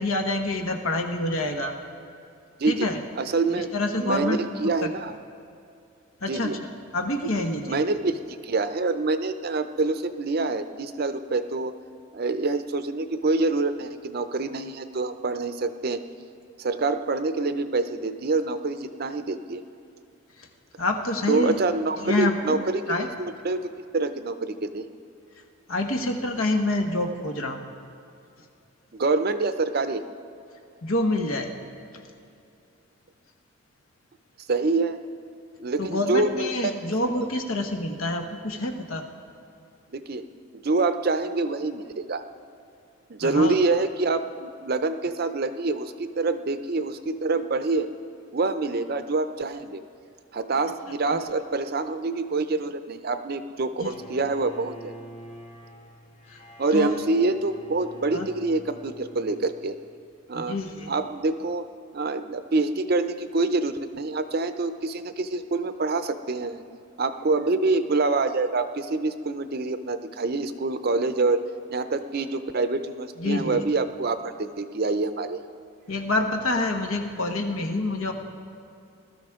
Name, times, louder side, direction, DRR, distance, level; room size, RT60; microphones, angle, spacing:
voice 1, 0.0-1.7 2.7-3.0 3.5-4.4 4.8-4.9 6.2-6.6 6.9-7.8 20.4-20.5 20.8-21.6 22.0-22.6 22.9-23.1 25.7-27.7 30.8-31.5 35.8-39.0 43.2-43.5 51.1-51.2 53.8-53.9 56.3-56.4 56.7-57.0 58.1-58.3 60.3-60.9 73.2-73.6 75.9-78.1, left 2 dB, 80° left, 4 dB, 1.3 m, -27 dB
voice 2, 2.6-2.9 3.2-3.7 4.0-5.1 6.3-6.6 7.7-11.7 12.1-16.0 16.6-19.6 21.3-23.6 23.9-24.9 28.9-30.0 34.5-35.0 35.6-36.5 37.0-37.1 39.9-40.3 40.5-42.2 43.1-47.9 48.3-49.8 50.3-54.9 56.6-59.8 60.3-60.6 60.9-61.7 61.9-66.6 67.0-71.4 71.7-75.4, right 3 dB, 45° right, 10 dB, 0.5 m, -26 dB
Bowed string instrument, 53.8-60.0, right 1 dB, 30° left, 1.0 m, -46 dB
20.5 x 13.0 x 3.6 m, 2.6 s
head